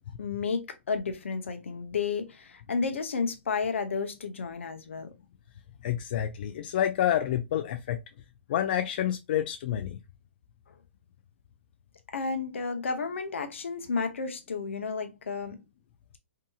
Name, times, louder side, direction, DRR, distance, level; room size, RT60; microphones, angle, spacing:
voice 1, 0.2-5.1 12.1-15.6, left 5 dB, 80° left, 0.7 m, -32 dB
voice 2, 5.8-8.0 8.5-10.0, left 11 dB, 50° left, 0.3 m, -28 dB
2.7 x 2.7 x 2.3 m
hypercardioid pair, 145°, 7 cm